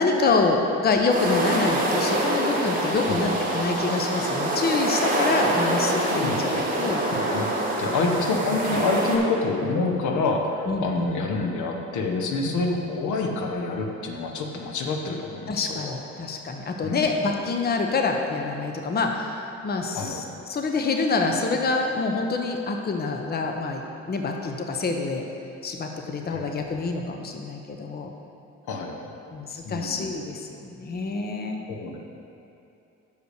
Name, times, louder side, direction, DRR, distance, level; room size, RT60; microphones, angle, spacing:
voice 1, 0.0-6.4 6.8-7.0 8.0-8.2 10.7-11.2 12.5-12.6 15.5-25.2 25.6-28.1 29.3-31.6, left 3 dB, 30° left, 3 dB, 0.7 m, -26 dB
sound 1, 1.1-9.2, right 1 dB, 30° right, 1.6 m, -25 dB
voice 2, 6.1-6.7 7.1-7.5 7.8-16.0 16.8-17.1 19.9-20.2 26.3-26.6 28.7-29.1 29.6-30.1 31.7-32.0, left 3 dB, 75° left, 2 dB, 0.9 m, -27 dB
6.7 x 5.1 x 6.4 m, 2.8 s
cardioid pair, 90°, 30 cm